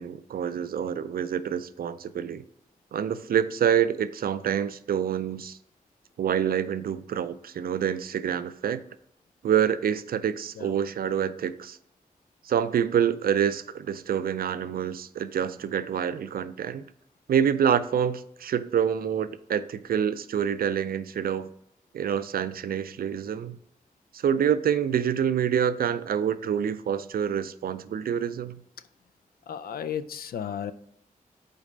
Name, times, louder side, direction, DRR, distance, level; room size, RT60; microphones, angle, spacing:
voice 1, 0.0-2.4 2.9-5.6 6.2-8.8 9.4-11.8 12.4-16.8 17.3-21.5 21.9-23.6 24.1-28.6, right 8 dB, 75° right, 0.4 m, -27 dB
voice 2, 29.5-30.7, left 8 dB, 80° left, 0.4 m, -34 dB
5.1 x 4.1 x 5.1 m
cardioid pair, 55°, 15 cm